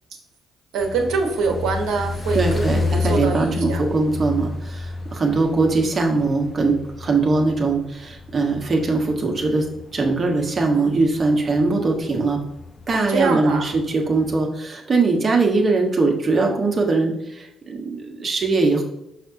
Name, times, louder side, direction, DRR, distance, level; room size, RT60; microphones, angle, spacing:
voice 1, 0.7-3.8 10.7-10.9 12.9-13.7, right 4 dB, 70° right, 1 dB, 1.2 m, -24 dB
sound 1, 0.8-14.5, left 3 dB, 35° left, 0.9 m, -31 dB
voice 2, 2.3-12.4 12.9-18.8, right 3 dB, 40° right, 1 dB, 1.5 m, -21 dB
6.0 x 5.7 x 2.8 m, 0.84 s
hypercardioid pair, 40°, 0 cm